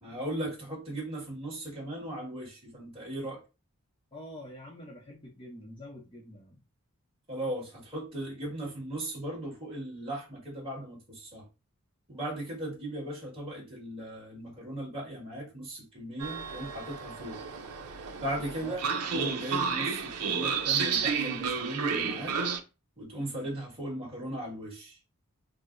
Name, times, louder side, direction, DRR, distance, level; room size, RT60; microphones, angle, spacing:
voice 1, 0.0-3.4 7.3-11.5 12.1-17.4 18.2-22.3 23.0-25.0, right 1 dB, 25° right, 1.6 m, -37 dB
voice 2, 4.1-6.6 18.6-18.8, left 1 dB, 20° left, 0.6 m, -46 dB
Train, 16.2-22.6, right 6 dB, 90° right, 0.5 m, -31 dB
4.5 x 2.0 x 2.5 m
head